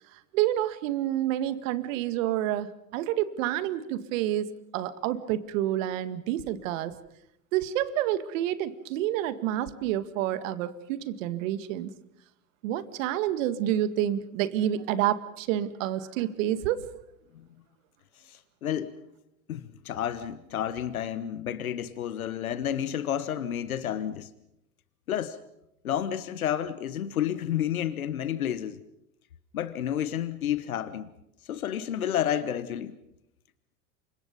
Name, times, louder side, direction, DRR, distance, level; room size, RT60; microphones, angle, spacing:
voice 1, 0.3-6.9 7.5-11.9 12.6-16.8, right 12 dB, 65° right, 2.1 m, -28 dB
voice 2, 18.1-18.9 19.5-24.3 25.1-25.4 25.8-28.8 29.5-31.1 31.4-32.9, left 10 dB, 90° left, 1.3 m, -30 dB
29.0 x 25.5 x 5.4 m
hypercardioid pair, 95°, 41 cm